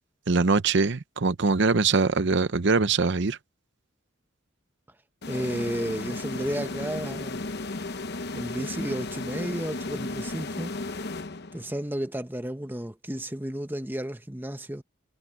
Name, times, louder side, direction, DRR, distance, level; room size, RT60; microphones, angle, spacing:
voice 1, 0.3-3.4, right 4 dB, 60° right, 0.7 m, -23 dB
sound 1, 5.2-11.8, left 2 dB, 55° left, 1.0 m, -34 dB
voice 2, 5.3-7.5 8.3-10.7 11.5-14.8, right 1 dB, 10° right, 1.1 m, -32 dB
head